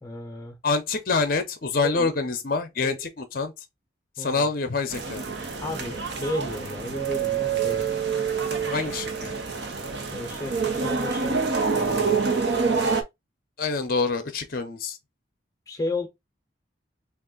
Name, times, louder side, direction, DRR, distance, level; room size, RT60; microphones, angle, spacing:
voice 1, 0.0-0.6 1.8-2.1 2.8-3.1 4.2-4.5 5.6-7.8 10.1-11.4 11.7-12.2 15.7-16.1, left 1 dB, 15° left, 0.8 m, -33 dB
voice 2, 0.6-3.5 4.2-5.2 8.5-9.4 13.6-15.0, left 4 dB, 50° left, 0.6 m, -26 dB
sound 1, 4.9-13.0, right 5 dB, 60° right, 0.9 m, -27 dB
3.6 x 2.4 x 3.8 m
head